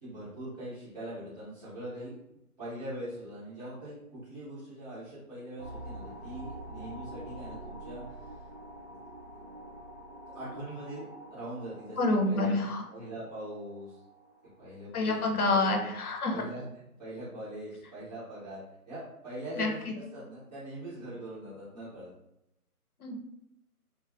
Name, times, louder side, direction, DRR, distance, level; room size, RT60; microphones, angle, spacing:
voice 1, 0.0-2.2 2.6-8.5 10.3-12.0 12.3-12.6 12.9-14.0 14.6-15.9 16.3-16.7 17.0-22.1, right 1 dB, 25° right, -13 dB, 1.1 m, -42 dB
sound 1, 5.6-14.8, right 1 dB, 50° right, 0.5 m, -46 dB
voice 2, 12.0-12.8 14.9-16.4 19.6-19.9 23.0-23.2, left 2 dB, 70° left, 1 dB, 0.7 m, -28 dB
3.4 x 2.0 x 2.4 m, 0.83 s
figure-of-eight pair, 160°, 46 cm